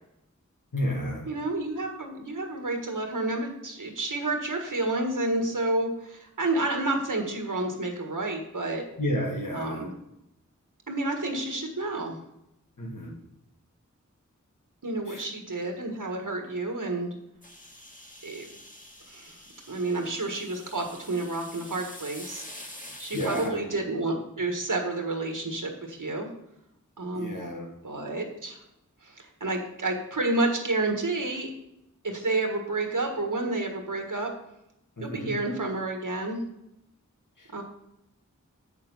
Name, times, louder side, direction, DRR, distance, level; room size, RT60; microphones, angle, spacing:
voice 1, 0.7-1.3 9.0-9.9 12.8-13.2 15.1-15.2 23.1-23.8 27.1-27.7 35.0-35.3 37.4-37.6, equal, 90° left, -1 dB, 2.1 m, -31 dB
voice 2, 1.3-8.8 9.5-9.9 10.9-12.2 14.8-17.1 18.2-18.5 19.1-19.4 19.7-22.4 23.0-26.3 27.0-27.3 27.8-28.6 29.0-31.5 32.0-34.3 35.0-36.4 37.5-37.6, right 2 dB, 85° right, 3 dB, 1.7 m, -30 dB
sound 1, 17.4-23.5, left 1 dB, 25° left, 2.0 m, -46 dB
8.2 x 6.8 x 5.5 m, 0.85 s
wide cardioid pair, 55°, 31 cm